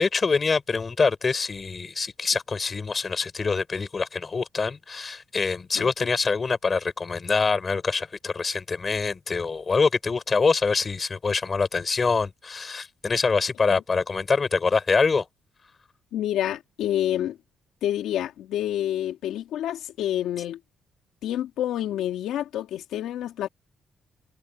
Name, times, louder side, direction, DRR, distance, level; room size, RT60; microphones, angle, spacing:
voice 1, 0.0-15.3, left 4 dB, 25° left, 7.4 m, -25 dB
voice 2, 16.1-17.4 17.8-20.6 21.2-23.5, left 11 dB, 85° left, 3.4 m, -28 dB
cardioid pair, 180°, 0 cm